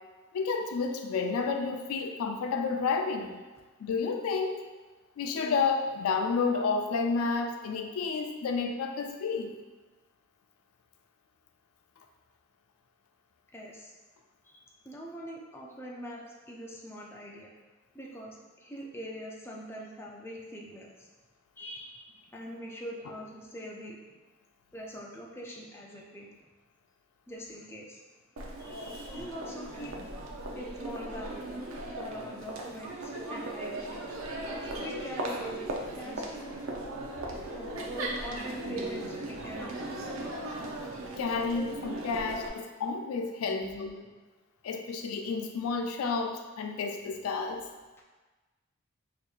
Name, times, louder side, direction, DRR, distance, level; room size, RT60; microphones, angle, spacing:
voice 1, 0.3-3.4 3.8-4.6 5.2-9.5 41.2-43.9 44.6-47.6, left 4 dB, 85° left, 4 dB, 0.4 m, -30 dB
voice 2, 13.5-13.9 14.4-17.5 17.9-21.1 21.6-24.0 24.7-26.3 27.3-28.0 28.6-30.0 30.5-31.7 32.0-34.2 34.6-35.4 35.9-36.6 37.5-40.0 43.4-44.1, equal, 10° left, -2 dB, 0.3 m, -43 dB
Crowd, 28.4-42.5, right 1 dB, 70° right, 0.5 m, -38 dB
4.3 x 2.7 x 2.3 m, 1.2 s
head